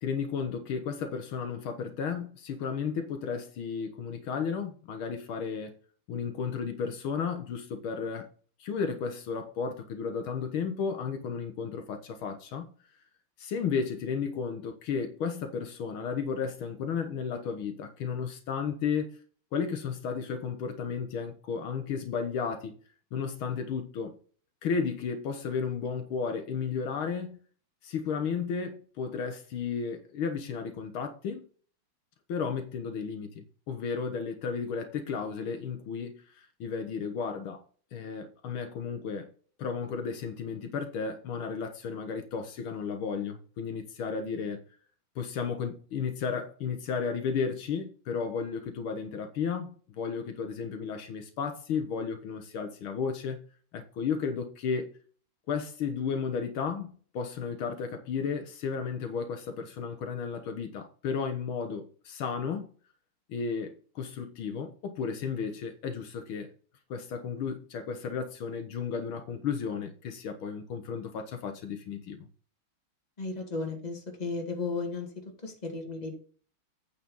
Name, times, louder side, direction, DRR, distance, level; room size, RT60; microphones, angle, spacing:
voice 1, 0.0-5.8 6.1-8.3 8.6-12.7 13.4-19.1 19.5-22.8 23.1-24.1 24.6-27.4 27.8-31.4 32.3-37.6 37.9-39.3 39.6-44.6 45.2-53.4 53.7-54.9 55.5-62.7 63.3-66.5 66.9-72.2, left 6 dB, 75° left, 1.9 m, -33 dB
voice 2, 73.2-75.1 75.4-76.1, left 3 dB, 20° left, 2.0 m, -34 dB
8.8 x 5.1 x 5.4 m
omnidirectional pair, 2.3 m